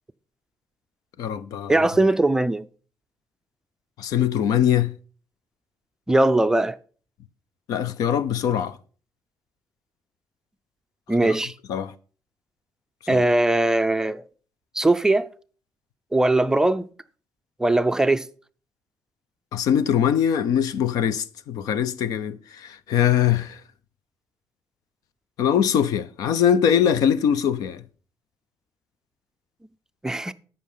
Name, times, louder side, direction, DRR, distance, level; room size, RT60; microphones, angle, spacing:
voice 1, 1.2-1.7 4.0-4.9 7.7-8.8 11.2-11.4 11.7-11.9 13.1-13.2 19.5-23.6 25.4-27.8, left 9 dB, 85° left, 0.7 m, -22 dB
voice 2, 1.7-2.6 6.1-6.8 11.1-11.5 13.1-14.2 14.8-15.3 16.1-16.9 17.6-18.3 30.0-30.3, right 2 dB, 10° right, 0.4 m, -20 dB
13.5 x 5.7 x 5.6 m
cardioid pair, 140°, 6 cm